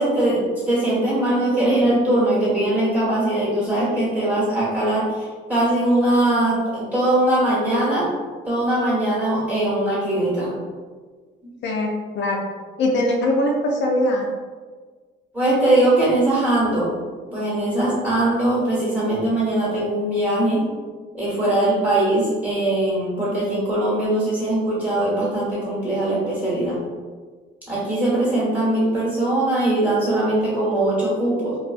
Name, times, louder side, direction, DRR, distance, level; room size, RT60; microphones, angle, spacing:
voice 1, 0.0-8.1 8.5-10.5 11.4-11.5 15.3-16.9 17.3-20.6 21.1-26.8 27.7-31.6, right 1 dB, 10° right, -9 dB, 1.3 m, -21 dB
voice 2, 11.6-12.5 12.8-14.3, left 1 dB, 70° left, 0 dB, 0.4 m, -21 dB
2.4 x 2.2 x 2.4 m, 1.5 s
cardioid pair, 105°, 20 cm